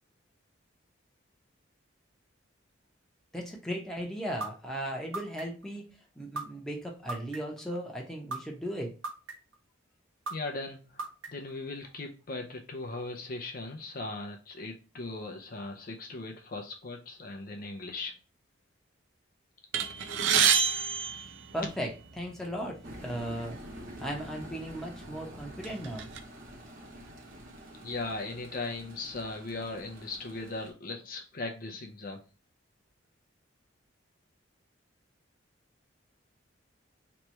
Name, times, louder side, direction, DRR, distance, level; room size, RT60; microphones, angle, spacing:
voice 1, 3.3-5.9 6.2-9.0 21.5-21.9 22.1-23.6 24.0-26.1, equal, ahead, 0.9 m, -36 dB
sound 1, 4.4-4.5 5.1-5.7 6.4-6.5 7.1-7.6 8.3-8.4 9.0-9.6 10.3-10.4 11.0-11.5, right 3 dB, 90° right, 0.9 m, -35 dB
voice 2, 10.3-18.1 27.8-32.2, left 3 dB, 45° left, 0.5 m, -38 dB
sound 2, 19.7-22.1 22.9-23.0 23.4-23.5 24.4-24.5 25.0-26.2, right 7 dB, 70° right, 0.5 m, -28 dB
sound 3, 22.8-30.7, equal, 45° right, 1.1 m, -47 dB
3.3 x 3.0 x 4.3 m
head